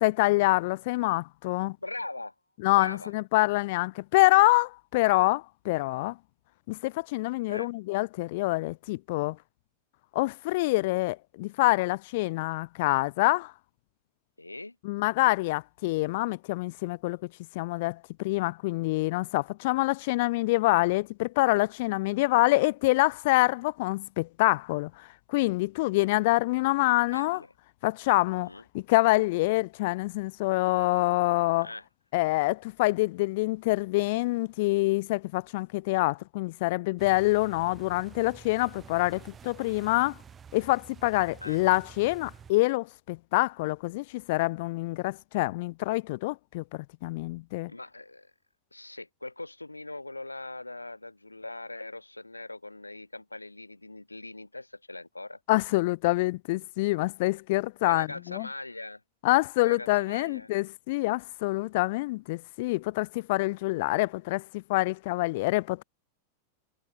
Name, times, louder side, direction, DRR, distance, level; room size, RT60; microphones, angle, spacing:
voice 1, 0.0-1.8 2.6-6.1 6.7-9.4 10.1-13.5 14.8-17.2 17.5-27.4 27.8-28.5 28.7-31.7 32.1-40.2 40.5-47.7 55.5-58.5 59.2-65.8, left 21 dB, 50° left, 0.7 m, -26 dB
voice 2, 1.8-2.3 2.7-3.1 7.5-7.7 14.4-14.8 27.1-27.5 28.4-28.6 31.6-31.8 41.4-41.6 47.7-48.3 48.7-55.4 57.8-59.0 59.6-60.5 63.8-64.0, left 2 dB, 85° left, 6.6 m, -41 dB
sound 1, 37.0-42.5, right 7 dB, 20° right, 4.0 m, -50 dB
figure-of-eight pair, 90°, 0 cm